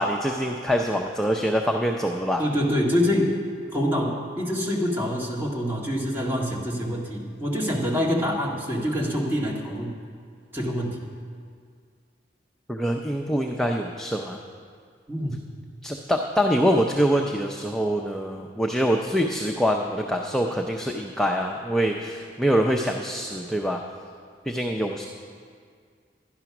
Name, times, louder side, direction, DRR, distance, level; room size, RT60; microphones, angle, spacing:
voice 1, 0.0-2.4 12.7-14.4 15.8-23.8 24.5-25.1, equal, 5° left, 2 dB, 0.5 m, -24 dB
voice 2, 2.4-3.3 3.7-9.9 10.5-11.0 15.1-15.4, equal, 15° right, -4 dB, 1.9 m, -25 dB
12.0 x 10.0 x 5.9 m, 2.1 s
head